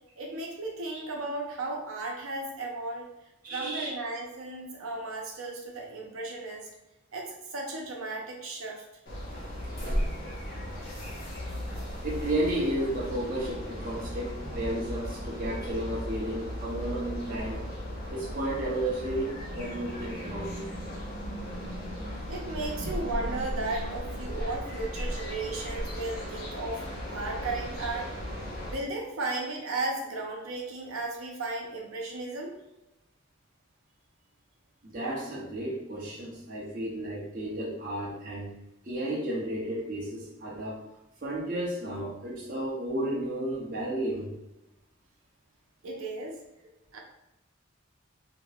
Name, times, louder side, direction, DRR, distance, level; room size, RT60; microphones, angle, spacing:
voice 1, 0.2-3.1 3.5-6.7 7.1-8.8 22.3-28.1 28.7-32.5 45.8-46.4 46.9-47.0, right 2 dB, 80° right, 0 dB, 0.8 m, -35 dB
voice 2, 3.4-3.9 12.0-17.7 18.1-20.6 34.8-38.6 38.8-40.8 41.2-44.3, right 1 dB, 40° right, -5 dB, 0.8 m, -33 dB
sound 1, 9.1-28.7, equal, 45° left, 1.1 m, -36 dB
3.6 x 2.9 x 2.4 m, 0.93 s
head